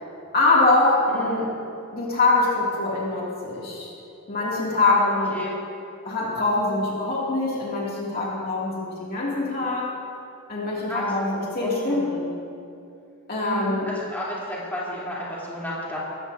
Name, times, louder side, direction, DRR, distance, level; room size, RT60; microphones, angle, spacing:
voice 1, 0.3-1.5 1.9-3.9 4.3-5.3 6.0-9.9 10.5-12.3 13.3-13.8, left 2 dB, 45° left, -5 dB, 2.4 m, -23 dB
voice 2, 1.1-1.4 4.9-5.5 10.9-12.0 13.4-16.0, equal, 10° left, -8 dB, 3.3 m, -32 dB
21.0 x 14.5 x 2.7 m, 2.6 s
head